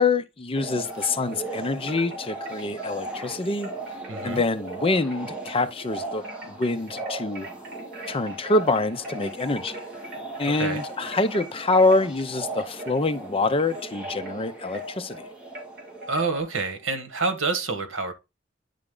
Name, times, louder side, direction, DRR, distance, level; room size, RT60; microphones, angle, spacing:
voice 1, 0.0-3.7 4.2-7.5 8.1-9.8 10.4-15.3, left 3 dB, 30° left, 0.6 m, -25 dB
sound 1, 0.5-16.7, right 3 dB, 5° right, 1.3 m, -38 dB
Wind chime, 0.8-1.5 1.9-16.4, equal, 55° right, 3.0 m, -42 dB
voice 2, 4.1-4.4 10.4-10.8 16.1-18.1, right 3 dB, 80° right, 1.5 m, -27 dB
9.8 x 3.6 x 3.7 m
head